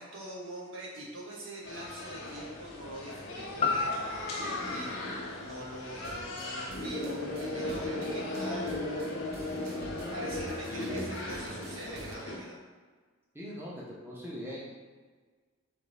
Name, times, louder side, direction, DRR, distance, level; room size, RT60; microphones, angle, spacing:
voice 1, 0.0-8.7 10.1-12.6, right 1 dB, 75° right, -4 dB, 1.1 m, -44 dB
sound 1, 1.6-12.4, left 1 dB, 90° left, 0.8 m, -37 dB
sound 2, 3.6-7.7 8.1-8.2, left 4 dB, 30° left, 0.3 m, -36 dB
sound 3, 6.0-12.2, right 2 dB, 50° right, 0.5 m, -49 dB
voice 2, 10.7-11.1 13.3-14.6, equal, 10° right, -6 dB, 0.7 m, -40 dB
3.5 x 3.1 x 4.0 m, 1.5 s
head